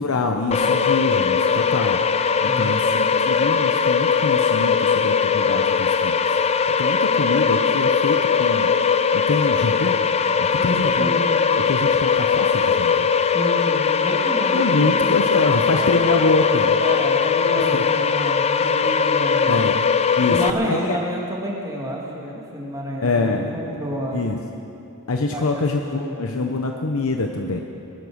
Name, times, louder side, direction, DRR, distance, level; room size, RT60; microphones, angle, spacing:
voice 1, 0.0-2.0 2.4-6.2 6.8-8.7 9.1-10.0 10.4-11.1 11.6-13.1 14.5-16.8 17.7-17.8 18.6-18.7 19.5-19.8 20.2-20.4 20.6-21.0 23.0-23.5 24.1-24.4 25.1-27.6, left 3 dB, 65° left, 3 dB, 0.9 m, -25 dB
sound 1, 0.5-20.5, left 6 dB, 30° left, 0.4 m, -20 dB
voice 2, 2.4-2.7 10.5-11.2 13.3-15.0 16.8-19.7 20.2-24.2 25.3-26.2, equal, 15° right, -3 dB, 2.6 m, -29 dB
20.5 x 11.0 x 6.4 m, 2.8 s
head